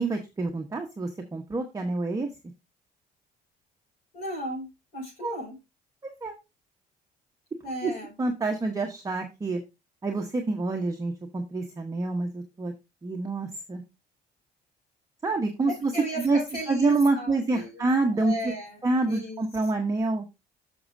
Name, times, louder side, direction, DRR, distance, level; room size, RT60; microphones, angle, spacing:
voice 1, 0.0-2.3 5.2-5.4 6.0-6.3 7.8-7.9 8.2-9.6 10.0-12.7 13.0-13.8 15.2-15.9 16.2-16.4 16.7-18.5 18.8-20.3, right 3 dB, 20° right, 3 dB, 1.0 m, -27 dB
voice 2, 4.1-5.5 7.6-8.1 15.7-19.4, equal, 55° left, -6 dB, 5.9 m, -36 dB
11.5 x 6.2 x 2.6 m, 0.25 s
cardioid pair, 110°, 17 cm